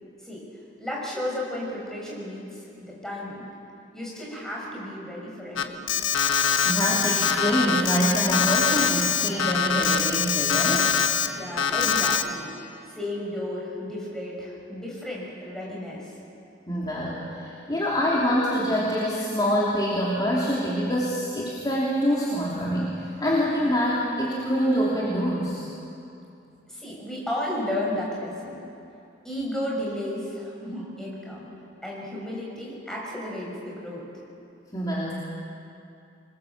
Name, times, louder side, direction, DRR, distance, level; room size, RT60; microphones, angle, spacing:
voice 1, 0.8-3.4 3.9-6.0 11.2-12.5 12.9-16.1 26.7-28.6 29.2-31.5 31.8-34.0, left 1 dB, 5° left, -4 dB, 6.5 m, -33 dB
Alarm, 5.6-11.3 11.6-12.2, left 7 dB, 75° left, 1.2 m, -23 dB
voice 2, 6.6-10.9 16.7-25.7 34.7-35.1, equal, 20° left, -6 dB, 2.9 m, -25 dB
26.0 x 21.0 x 7.3 m, 2.7 s
head